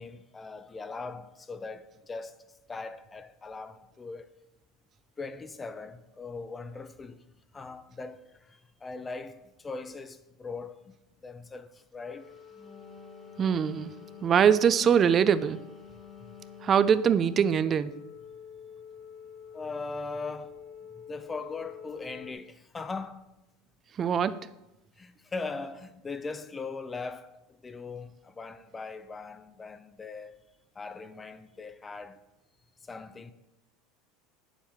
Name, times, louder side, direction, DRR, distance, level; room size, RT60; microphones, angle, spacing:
voice 1, 0.0-2.4 2.7-4.3 5.2-7.2 7.5-11.0 11.2-12.3 16.2-16.3 19.5-20.6 21.1-23.3 25.0-30.4 30.7-32.2 32.8-33.3, left 4 dB, 20° left, 0.6 m, -40 dB
sound 1, 12.1-22.3, left 7 dB, 80° left, 1.0 m, -49 dB
Wind instrument woodwind instrument, 12.4-17.7, left 5 dB, 20° right, 1.5 m, -50 dB
voice 2, 13.4-13.9 14.2-15.6 16.6-17.9 24.0-24.4, right 7 dB, 35° right, 0.4 m, -22 dB
8.8 x 7.2 x 3.6 m
supercardioid pair, 105°, 0 cm